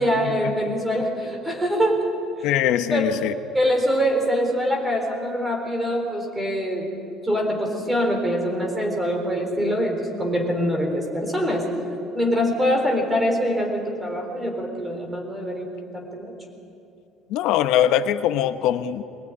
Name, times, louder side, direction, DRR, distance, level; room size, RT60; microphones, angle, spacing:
voice 1, 0.0-2.0 2.4-3.0 3.5-6.9 7.2-11.7 12.1-15.7 15.9-16.3, equal, 5° right, 1 dB, 3.9 m, -24 dB
voice 2, 2.4-3.3 17.3-19.0, left 11 dB, 60° left, 10 dB, 1.0 m, -21 dB
22.5 x 20.0 x 9.6 m, 2.6 s
cardioid pair, 180°, 0 cm